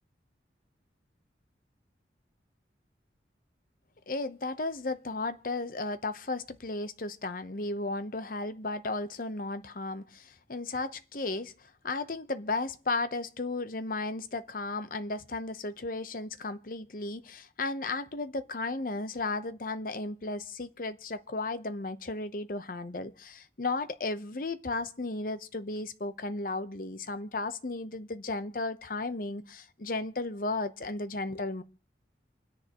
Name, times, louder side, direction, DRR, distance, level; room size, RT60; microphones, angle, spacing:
voice 1, 4.1-31.6, left 3 dB, 50° left, 0.8 m, -34 dB
28.0 x 10.0 x 3.0 m
head